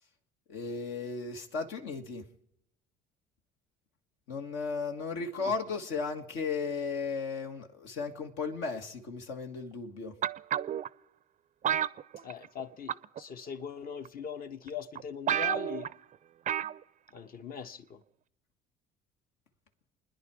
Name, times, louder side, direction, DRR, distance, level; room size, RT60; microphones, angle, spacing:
voice 1, 0.5-2.3 4.3-10.1, left 4 dB, 70° left, 1.6 m, -35 dB
sound 1, 10.2-10.9 11.6-12.6 12.9-13.2 14.0-14.1 14.7-14.8 15.0-15.1 15.3-15.9 16.5-16.8 17.1-17.2, right 10 dB, 40° right, 0.5 m, -30 dB
voice 2, 12.2-15.9 17.1-18.0, left 7 dB, 50° left, 1.1 m, -41 dB
28.5 x 10.5 x 4.8 m
hypercardioid pair, 65°, 19 cm